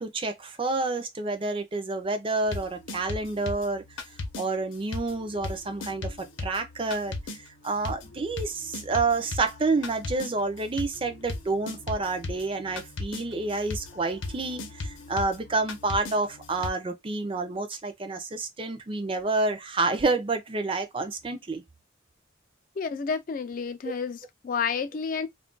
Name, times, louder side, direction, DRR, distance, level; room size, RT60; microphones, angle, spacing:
voice 1, 0.0-3.8 4.4-7.1 7.6-21.6, right 3 dB, 30° right, 0.5 m, -29 dB
sound 1, 2.4-4.4 4.9-16.7, left 2 dB, 85° left, 0.7 m, -38 dB
voice 2, 22.8-25.3, left 6 dB, 45° left, 0.3 m, -30 dB
2.4 x 2.2 x 3.7 m
head